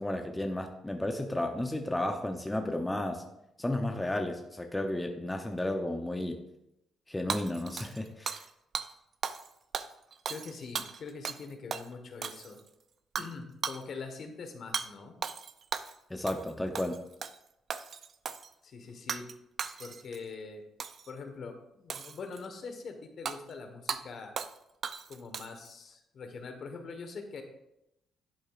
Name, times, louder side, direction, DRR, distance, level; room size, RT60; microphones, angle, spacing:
voice 1, 0.0-3.2 3.6-6.4 7.1-8.4 16.1-17.0, left 1 dB, 10° left, 4 dB, 0.7 m, -33 dB
Hammer / Shatter, 7.3-8.5 8.7-8.9 9.2-9.5 9.7-11.4 11.7-11.9 12.2-12.7 13.2-13.3 13.6-13.8 14.7-14.9 15.2-16.0 16.3-16.5 16.7-17.4 17.7-18.5 19.1-19.3 19.6-20.2 20.8-21.1 21.9-22.5 23.3-23.4 23.9-24.0 24.4-24.6 24.8-25.7, right 6 dB, 55° right, 0.5 m, -36 dB
voice 2, 10.3-12.6 13.2-15.2 18.6-19.3 19.8-20.6 21.1-24.3 25.1-27.4, left 4 dB, 60° left, 5 dB, 1.3 m, -43 dB
11.0 x 7.9 x 2.5 m, 0.85 s
cardioid pair, 90°, 0 cm